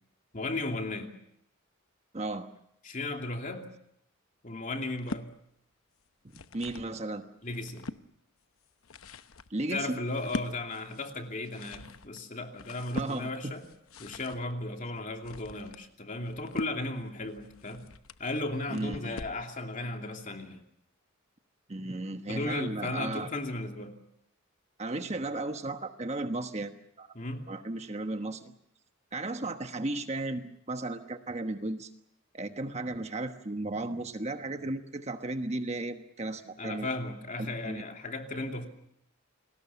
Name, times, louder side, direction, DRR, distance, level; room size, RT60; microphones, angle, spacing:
voice 1, 0.3-1.1 2.8-3.7 4.4-5.3 7.4-7.9 9.7-13.7 14.0-17.8 18.2-20.6 22.3-24.0 27.1-27.5 36.6-38.7, left 2 dB, 40° left, 3 dB, 2.8 m, -35 dB
voice 2, 2.1-2.5 6.3-7.2 9.5-10.0 12.9-13.5 18.7-19.2 21.7-23.3 24.8-27.1 27.5-28.5 29.1-31.9 32.3-36.9 37.4-37.8, right 2 dB, 30° right, 7 dB, 1.2 m, -35 dB
sound 1, 4.8-5.3 6.1-6.9 7.4-8.0 8.6-19.5, left 3 dB, 80° left, 0.9 m, -43 dB
29.0 x 20.0 x 7.0 m, 0.73 s
head